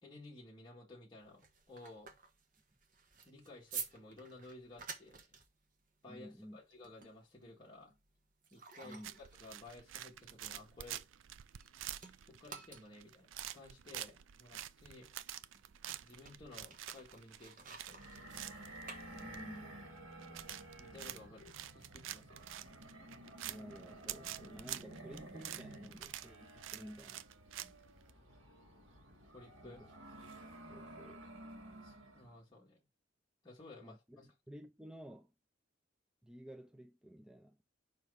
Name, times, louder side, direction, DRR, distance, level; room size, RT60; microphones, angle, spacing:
voice 1, 0.0-2.1 3.3-5.4 6.0-7.9 8.5-11.0 12.0-15.1 16.0-18.4 20.8-22.4 27.6-27.7 29.3-29.8 31.8-32.8 33.4-34.3, left 2 dB, 20° left, 1.8 m, -55 dB
sound 1, 1.2-11.7 12.0-19.7, right 6 dB, 45° right, 1.1 m, -52 dB
voice 2, 6.1-6.6 8.8-9.1 19.1-19.8 23.4-27.3 29.6-29.9 30.7-31.2 33.8-35.3 36.2-37.6, equal, 5° right, 0.4 m, -53 dB
sound 2, 9.0-28.1, right 12 dB, 75° right, 0.4 m, -48 dB
sound 3, 17.8-32.4, right 1 dB, 90° right, 2.4 m, -53 dB
5.3 x 4.6 x 4.8 m
head